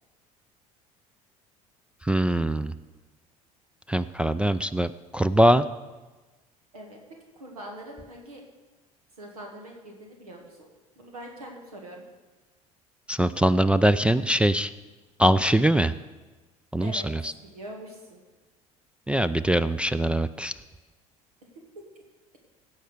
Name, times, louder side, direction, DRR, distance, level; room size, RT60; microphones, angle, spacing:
voice 1, 2.0-2.7 3.9-5.7 13.1-14.7 15.2-15.9 16.7-17.3 19.1-20.5, right 1 dB, 5° right, 9 dB, 0.3 m, -22 dB
voice 2, 7.4-8.4 9.2-10.7 11.0-12.0 16.8-17.1 17.4-18.2 21.4-21.5 21.8-21.9, right 1 dB, 85° right, 1 dB, 1.7 m, -43 dB
16.5 x 5.7 x 6.5 m, 1.2 s
hypercardioid pair, 65°, 19 cm